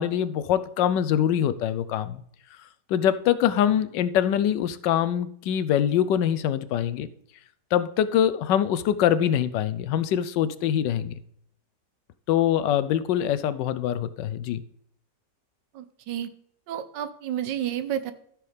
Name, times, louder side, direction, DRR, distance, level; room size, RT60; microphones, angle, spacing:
voice 1, 0.0-2.2 2.9-7.1 7.7-11.1 12.3-14.6, left 10 dB, 85° left, 1.3 m, -24 dB
voice 2, 15.7-16.3 16.7-18.1, right 10 dB, 80° right, 1.4 m, -31 dB
13.5 x 6.3 x 3.3 m
omnidirectional pair, 1.9 m